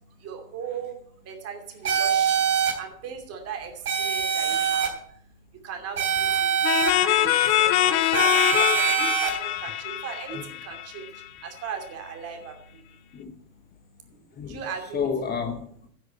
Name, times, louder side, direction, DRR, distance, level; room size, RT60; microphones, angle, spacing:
voice 1, 0.2-1.0 1.3-2.4 2.8-3.7 4.0-4.9 5.6-6.5 7.0-7.3 7.6-11.0 11.4-12.6 14.5-15.1, right 7 dB, 30° right, 2.7 m, -37 dB
sound 1, 1.9-2.7 3.9-4.9 6.0-6.9 8.1-9.3, right 8 dB, 75° right, 3.2 m, -23 dB
sound 2, 6.6-11.2, left 13 dB, 45° left, 0.9 m, -23 dB
voice 2, 14.9-15.9, left 6 dB, 20° left, 1.0 m, -31 dB
10.5 x 6.3 x 8.4 m
hypercardioid pair, 100°, 46 cm